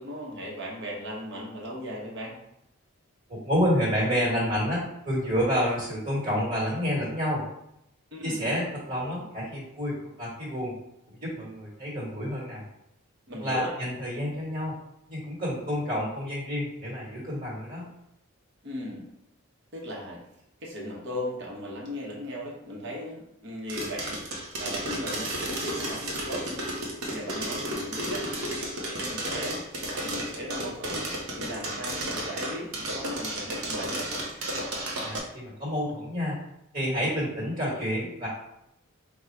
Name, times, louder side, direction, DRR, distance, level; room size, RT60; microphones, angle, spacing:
voice 1, 0.0-2.4 8.1-8.4 13.3-13.7 18.6-19.0 19.7-20.2 20.6-24.2 24.6-26.6 27.1-28.3 28.9-29.6 29.9-31.1 31.4-34.1, equal, 55° right, -2 dB, 1.1 m, -37 dB
voice 2, 3.3-7.4 8.2-10.8 11.2-12.6 13.4-14.7 15.1-17.9 35.0-36.4 36.7-38.3, equal, 40° right, -5 dB, 1.4 m, -29 dB
sound 1, 23.7-35.2, right 1 dB, 85° right, 0.9 m, -33 dB
3.6 x 2.4 x 4.4 m, 0.80 s
head